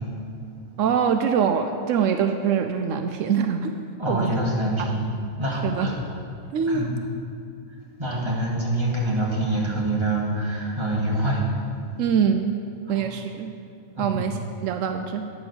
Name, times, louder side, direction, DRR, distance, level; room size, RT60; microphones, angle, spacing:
voice 1, 0.8-3.7 4.1-4.3 4.8-4.9 5.6-5.9 6.5-6.9 12.0-12.5 12.9-13.5 14.0-15.2, right 7 dB, 80° right, 6 dB, 1.0 m, -24 dB
voice 2, 4.0-5.1 5.4-5.9 6.7-6.9 8.0-11.4 12.9-13.0 13.9-14.2, right 1 dB, 20° right, -4 dB, 1.9 m, -25 dB
9.0 x 6.1 x 6.9 m, 2.4 s
omnidirectional pair, 1.3 m